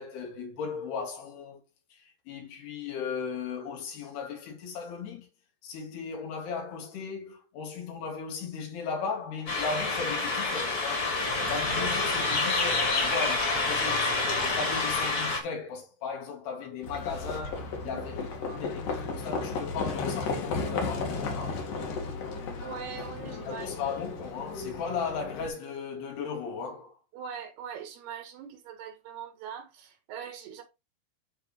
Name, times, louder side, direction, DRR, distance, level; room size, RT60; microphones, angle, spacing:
voice 1, 0.0-1.6 1.9-5.3 5.6-21.6 23.4-27.0, left 5 dB, 85° left, 4.2 m, -36 dB
sound 1, 9.5-15.4, left 3 dB, 30° left, 2.0 m, -28 dB
Livestock farm animals working animals, 16.8-25.5, left 4 dB, 60° left, 3.3 m, -34 dB
voice 2, 17.8-18.3 22.6-24.0 27.1-30.6, right 8 dB, 80° right, 3.5 m, -42 dB
12.0 x 4.3 x 3.1 m
omnidirectional pair, 4.6 m